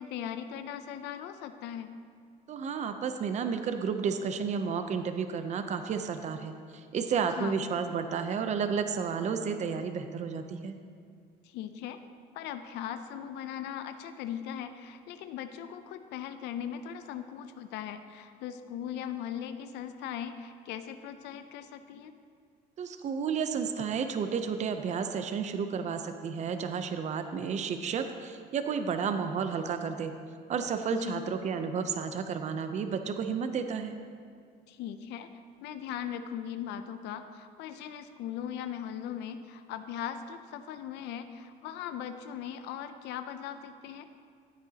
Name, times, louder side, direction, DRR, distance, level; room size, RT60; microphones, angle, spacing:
voice 1, 0.0-1.9 7.1-7.6 11.4-12.0 12.3-22.1 30.9-31.3 34.7-35.3 35.6-44.1, left 9 dB, 85° left, 9 dB, 0.6 m, -39 dB
voice 2, 2.5-10.7 22.8-30.1 30.5-34.0, right 6 dB, 45° right, 8 dB, 0.6 m, -32 dB
14.0 x 8.8 x 2.9 m, 2.2 s
cardioid pair, 110°, 17 cm